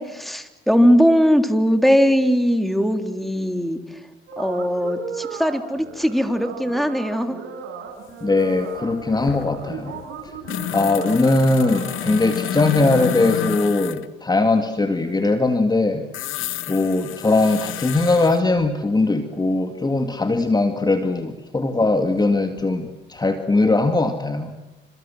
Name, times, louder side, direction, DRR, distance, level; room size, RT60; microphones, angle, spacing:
voice 1, 0.0-3.8 4.4-7.4, equal, ahead, 7 dB, 3.7 m, -19 dB
sound 1, 4.3-13.5, right 6 dB, 80° right, 7.2 m, -36 dB
sound 2, 8.1-8.2 8.4-14.1 16.1-18.4 20.6-20.7 22.2-22.9 23.2-23.3, left 12 dB, 85° left, 1.5 m, -30 dB
voice 2, 8.2-10.0 10.2-10.3 10.7-16.1 16.7-24.5, left 2 dB, 20° left, 6 dB, 2.2 m, -20 dB
29.0 x 27.0 x 7.6 m, 1.0 s
cardioid pair, 90°, 20 cm